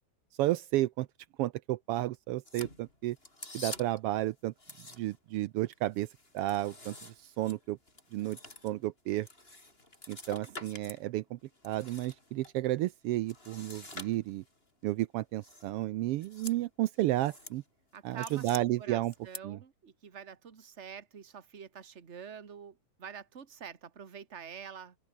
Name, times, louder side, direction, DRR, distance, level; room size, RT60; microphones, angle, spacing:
voice 1, 0.4-1.1 1.4-3.2 3.5-4.5 5.0-6.1 6.3-7.8 8.1-8.4 8.6-9.3 10.1-11.4 11.6-14.4 14.8-17.6 18.0-19.1 19.4-19.6, right 16 dB, 90° right, 1.3 m, -32 dB
sound 1, 2.4-4.1 4.6-5.3 5.7-11.0 11.4-12.5 13.3-14.6 15.4-15.7 16.1-16.6 17.0-17.6 17.9-18.6 19.1-19.4, left 2 dB, 20° left, 5.1 m, -47 dB
voice 2, 17.9-25.0, right 7 dB, 30° right, 1.5 m, -47 dB
omnidirectional pair, 3.3 m